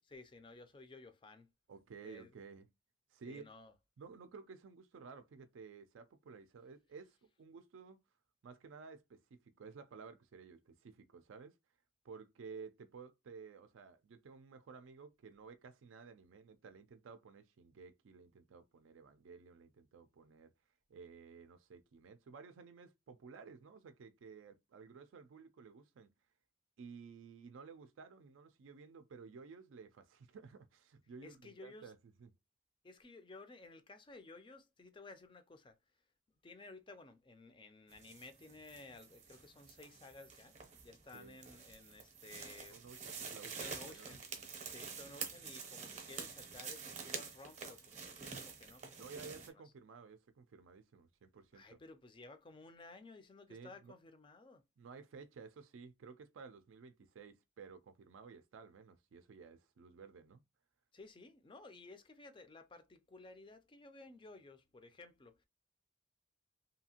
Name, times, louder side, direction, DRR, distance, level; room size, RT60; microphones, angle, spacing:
voice 1, 0.1-1.5 2.0-2.3 3.3-3.7 31.2-31.9 32.8-35.8 36.4-40.6 40.8-42.8 43.4-44.2 44.6-49.6 51.5-54.6 60.9-65.4, left 3 dB, 25° left, 0.4 m, -55 dB
voice 2, 1.7-2.7 3.1-3.5 4.0-8.0 8.4-11.5 12.0-20.5 20.9-26.1 26.8-32.3 41.1-41.4 42.7-44.5 49.0-51.8 53.5-53.9 54.8-60.4, right 5 dB, 80° right, 0.4 m, -54 dB
sound 1, 37.9-49.5, right 5 dB, 35° right, 0.6 m, -48 dB
2.8 x 2.4 x 2.8 m
head